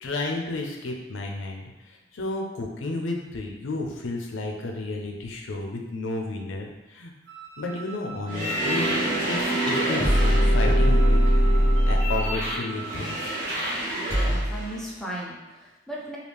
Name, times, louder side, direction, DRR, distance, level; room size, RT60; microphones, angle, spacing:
voice 1, 0.0-7.1 7.6-9.0 9.3-13.3, left 2 dB, 75° left, 1 dB, 0.5 m, -32 dB
Wind instrument woodwind instrument, 7.3-13.5, right 4 dB, 55° right, 0.5 m, -41 dB
sound 1, 8.3-14.7, equal, 15° right, 1.1 m, -22 dB
voice 2, 13.9-16.2, right 1 dB, ahead, -5 dB, 0.5 m, -37 dB
3.2 x 2.4 x 3.4 m, 1.1 s
head